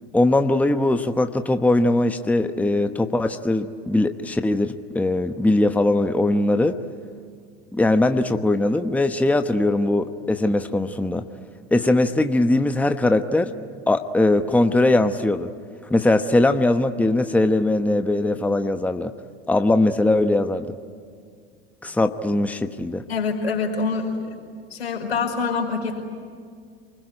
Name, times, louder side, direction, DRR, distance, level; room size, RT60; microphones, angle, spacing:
voice 1, 0.1-6.8 7.7-11.2 11.7-13.5 13.9-15.5 15.9-19.1 19.5-20.8 21.8-23.0, left 2 dB, 5° left, 8 dB, 1.0 m, -20 dB
voice 2, 23.1-24.1 24.7-26.0, left 4 dB, 85° left, 0 dB, 5.1 m, -25 dB
28.5 x 21.0 x 9.9 m, 2.1 s
hypercardioid pair, 90°, 31 cm